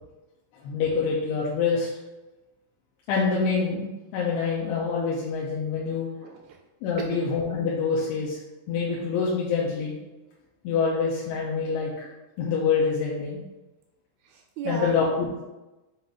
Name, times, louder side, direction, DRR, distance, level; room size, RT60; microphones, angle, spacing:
voice 1, 0.6-1.9 3.1-3.9 4.1-6.1 6.8-8.4 8.7-10.0 10.6-12.1 12.4-13.4 14.6-15.4, left 5 dB, 80° left, -5 dB, 2.7 m, -26 dB
voice 2, 6.2-6.6 7.0-7.2 14.2-15.3, right 6 dB, 80° right, 3 dB, 2.3 m, -36 dB
7.7 x 2.6 x 5.4 m, 1.1 s
omnidirectional pair, 4.8 m